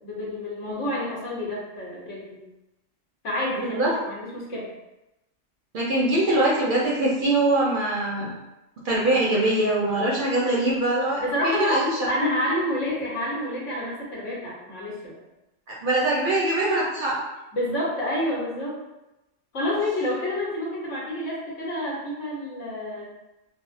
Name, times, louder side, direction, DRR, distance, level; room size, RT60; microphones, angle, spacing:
voice 1, 0.0-2.4 3.2-4.7 11.2-15.1 17.5-18.8 19.5-23.1, left 1 dB, 80° left, -6 dB, 1.3 m, -28 dB
voice 2, 3.6-3.9 5.7-8.3 8.8-12.1 15.7-17.2, right 1 dB, 60° right, -4 dB, 0.6 m, -23 dB
3.4 x 2.0 x 2.5 m, 0.97 s
omnidirectional pair, 1.2 m